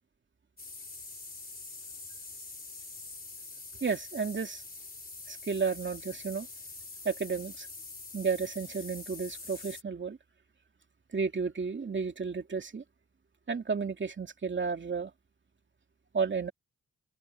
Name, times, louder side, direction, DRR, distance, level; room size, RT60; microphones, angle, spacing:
sound 1, 0.6-9.8, left 3 dB, 30° left, 3.9 m, -45 dB
voice 1, 3.8-4.6 5.3-6.5 7.0-7.7 8.1-10.2 11.1-12.8 13.5-15.1 16.1-16.5, right 5 dB, 40° right, 2.6 m, -32 dB
open air
cardioid pair, 75°, 29 cm